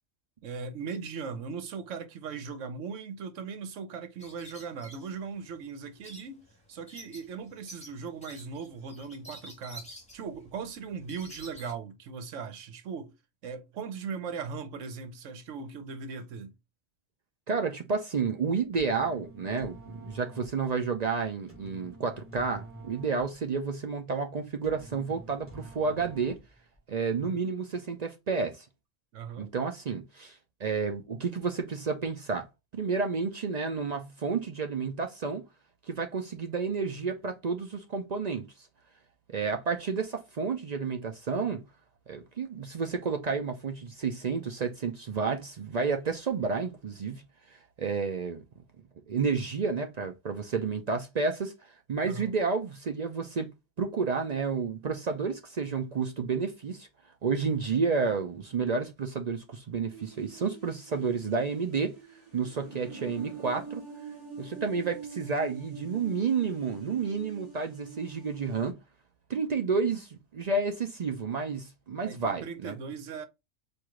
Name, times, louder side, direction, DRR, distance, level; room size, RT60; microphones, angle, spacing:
voice 1, 0.4-9.9 10.1-13.1 13.4-16.5 27.1-27.4 29.1-29.5 52.0-52.3 72.0-73.2, right 5 dB, 75° right, 1.1 m, -39 dB
sound 1, 4.2-11.7, equal, 5° left, 1.4 m, -50 dB
voice 2, 17.5-26.4 26.9-28.7 29.4-32.5 32.7-35.4 35.9-38.5 39.3-41.6 42.1-47.2 47.8-48.4 49.1-51.5 51.9-53.5 53.8-56.9 57.2-61.9 62.3-63.8 64.4-68.8 69.3-72.7, right 5 dB, 55° right, 0.4 m, -30 dB
sound 2, 18.7-26.8, right 1 dB, 10° right, 1.9 m, -49 dB
sound 3, 59.9-68.7, right 5 dB, 35° right, 2.3 m, -45 dB
4.7 x 2.6 x 3.6 m
omnidirectional pair, 1.3 m